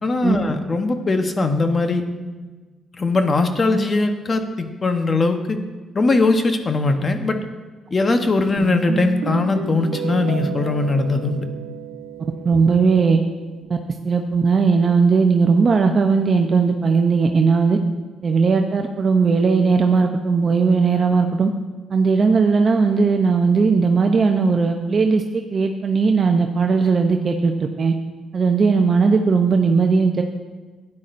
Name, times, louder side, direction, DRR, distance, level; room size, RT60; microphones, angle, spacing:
voice 1, 0.0-2.0 3.0-5.6 5.9-7.4 7.9-11.5, left 3 dB, 35° left, 7 dB, 0.9 m, -20 dB
Guitar, 8.6-13.6, right 6 dB, 85° right, 1.1 m, -31 dB
voice 2, 12.4-13.2 13.7-13.8 14.0-17.8 18.2-21.5 21.9-27.9 28.3-30.2, right 4 dB, 45° right, 4 dB, 0.6 m, -17 dB
12.5 x 9.7 x 2.6 m, 1.3 s
cardioid pair, 90°, 0 cm